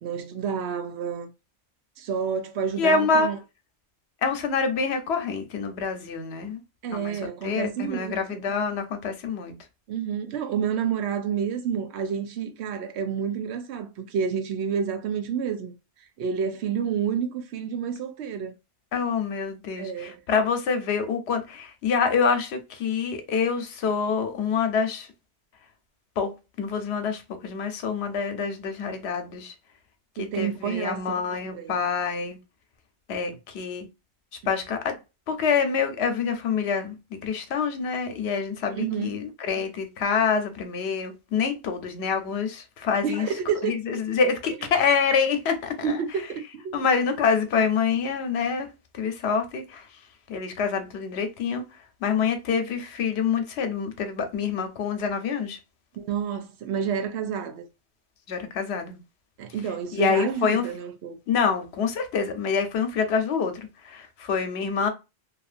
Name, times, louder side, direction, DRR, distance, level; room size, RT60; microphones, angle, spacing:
voice 1, 0.0-1.3 2.0-3.4 6.8-8.4 9.9-15.7 16.2-18.5 19.8-20.2 30.2-31.8 38.7-39.2 43.0-44.0 45.8-46.8 56.0-57.6 59.4-61.2, right 7 dB, 85° right, 0.9 m, -29 dB
voice 2, 2.8-3.3 4.2-6.6 6.9-9.5 18.9-25.1 26.2-29.5 30.2-32.4 33.1-33.9 34.5-35.0 35.3-37.0 37.2-43.3 43.6-46.0 46.7-48.7 48.9-49.9 50.3-51.6 52.0-55.6 58.3-59.0 59.9-60.7 61.3-64.9, left 5 dB, 85° left, 0.9 m, -26 dB
2.7 x 2.4 x 2.4 m
omnidirectional pair, 1.1 m